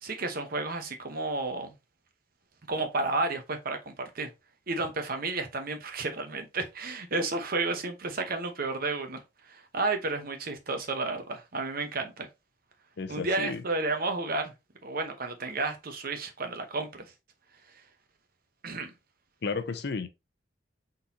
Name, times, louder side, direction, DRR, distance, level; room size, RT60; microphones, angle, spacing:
voice 1, 0.0-1.7 2.7-4.3 4.7-12.3 13.1-14.5 14.8-17.0 18.6-18.9, right 3 dB, 50° right, 0.9 m, -32 dB
voice 2, 13.0-13.6 19.4-20.1, left 4 dB, 60° left, 0.6 m, -33 dB
3.9 x 3.9 x 2.8 m
head